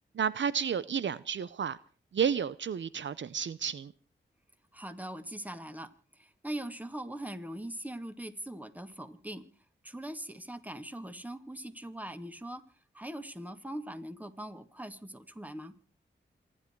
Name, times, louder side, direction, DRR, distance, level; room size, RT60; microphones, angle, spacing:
voice 1, 0.1-1.8 2.1-3.9, right 7 dB, 70° right, 0.7 m, -31 dB
voice 2, 4.7-9.5 9.8-12.6 12.9-15.7, right 1 dB, 10° right, 2.3 m, -41 dB
27.5 x 11.0 x 4.6 m
cardioid pair, 50°, 19 cm